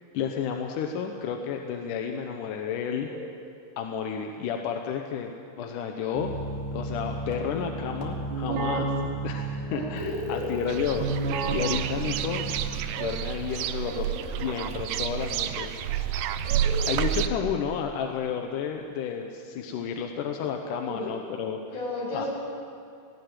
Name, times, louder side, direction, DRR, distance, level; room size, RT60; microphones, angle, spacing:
voice 1, 0.1-3.1 3.8-5.3 5.6-6.4 6.7-8.9 9.2-12.5 13.0-14.1 14.4-15.8 16.9-21.6 22.1-22.3, left 7 dB, 70° left, 3 dB, 2.3 m, -31 dB
Keyboard (musical), 6.1-13.0, right 3 dB, 60° right, 3.3 m, -32 dB
voice 2, 9.7-10.5 13.8-14.6 16.6-16.9 20.8-21.1 21.7-22.3, left 1 dB, 50° left, -5 dB, 8.5 m, -34 dB
sound 1, 10.7-17.3, right 10 dB, 75° right, 2.3 m, -30 dB
19.5 x 16.5 x 9.1 m, 2.4 s
omnidirectional pair, 4.3 m